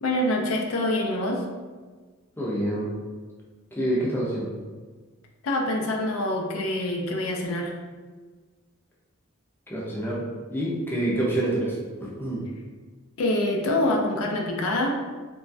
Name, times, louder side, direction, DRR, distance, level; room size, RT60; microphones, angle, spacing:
voice 1, 0.0-1.4 5.4-7.7 13.2-14.9, left 1 dB, 70° left, 1 dB, 0.4 m, -25 dB
voice 2, 2.4-3.0 3.7-4.6 9.7-12.5, right 1 dB, 10° left, -5 dB, 0.5 m, -27 dB
3.0 x 2.2 x 2.5 m, 1.4 s
head